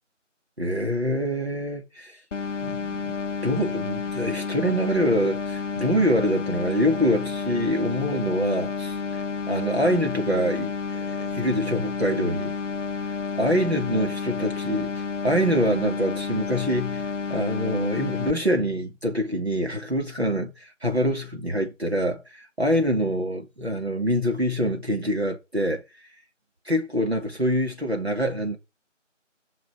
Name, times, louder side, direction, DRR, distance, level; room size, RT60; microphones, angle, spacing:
voice 1, 0.6-2.2 2.6-2.8 3.0-3.1 3.4-9.2 9.5-12.5 13.4-25.8 26.7-28.6, equal, 55° right, 2.7 m, -25 dB
sound 1, 2.3-18.3, left 5 dB, 70° left, 0.6 m, -30 dB
9.6 x 6.1 x 7.5 m
figure-of-eight pair, 180°, 38 cm